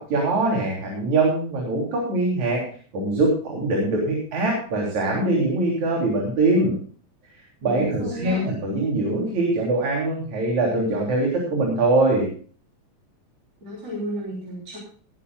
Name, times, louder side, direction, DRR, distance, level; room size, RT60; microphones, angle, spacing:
voice 1, 0.1-2.6 2.9-6.8 7.6-12.3, right 2 dB, 70° right, -2 dB, 4.7 m, -22 dB
voice 2, 7.6-8.5 13.6-14.8, equal, 55° right, -3 dB, 4.6 m, -33 dB
19.5 x 12.5 x 2.4 m, 0.43 s
omnidirectional pair, 3.4 m